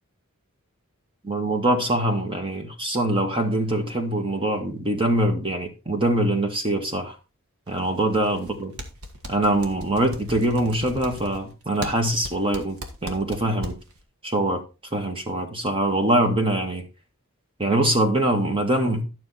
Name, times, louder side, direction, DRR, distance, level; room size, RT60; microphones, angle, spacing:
voice 1, 1.2-7.2 7.7-8.7 9.3-12.8 13.0-13.7 14.2-14.6 14.9-16.8 17.6-19.0, right 1 dB, 25° right, 1.6 m, -23 dB
sound 1, 7.7-8.5 8.8-14.0, right 1 dB, 80° right, 1.7 m, -37 dB
12.0 x 6.2 x 4.2 m
head